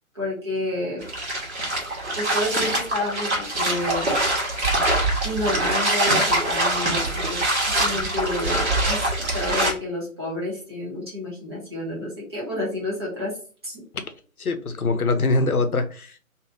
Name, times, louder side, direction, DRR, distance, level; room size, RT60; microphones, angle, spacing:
voice 1, 0.1-1.0 2.1-4.1 5.2-13.3 13.6-13.8, left 1 dB, 20° right, -5 dB, 0.8 m, -30 dB
sound 1, 1.0-9.7, right 1 dB, 50° right, 1.3 m, -24 dB
voice 2, 14.4-16.2, left 3 dB, 85° left, 9 dB, 0.7 m, -23 dB
3.0 x 2.6 x 2.4 m, 0.39 s
figure-of-eight pair, 145°, 43 cm